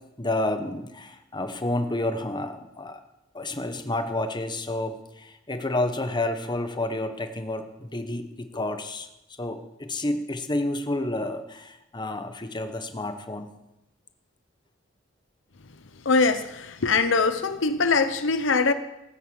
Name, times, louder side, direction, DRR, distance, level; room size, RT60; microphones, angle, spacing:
voice 1, 0.2-3.0 3.3-9.1 9.4-13.5, left 2 dB, 25° left, 1.2 m, -30 dB
voice 2, 16.0-18.7, left 4 dB, 70° left, 0.8 m, -22 dB
17.5 x 9.3 x 7.1 m
head